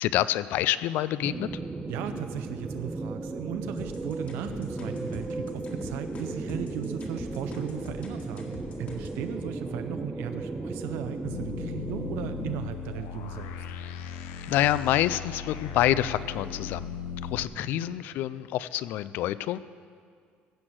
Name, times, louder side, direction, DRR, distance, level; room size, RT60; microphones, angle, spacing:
voice 1, 0.0-1.5 14.5-16.9 17.2-19.6, left 13 dB, 60° left, 16 dB, 0.4 m, -27 dB
sound 1, 1.2-12.6, right 2 dB, 10° right, 0.5 m, -35 dB
voice 2, 1.9-13.6 17.6-17.9, right 10 dB, 75° right, 8 dB, 0.5 m, -37 dB
sound 2, 3.8-9.2, left 3 dB, 40° left, 1.8 m, -43 dB
sound 3, 11.2-17.4, left 6 dB, 80° left, 0.8 m, -37 dB
16.0 x 6.2 x 7.8 m, 2.1 s
cardioid pair, 175°, 4 cm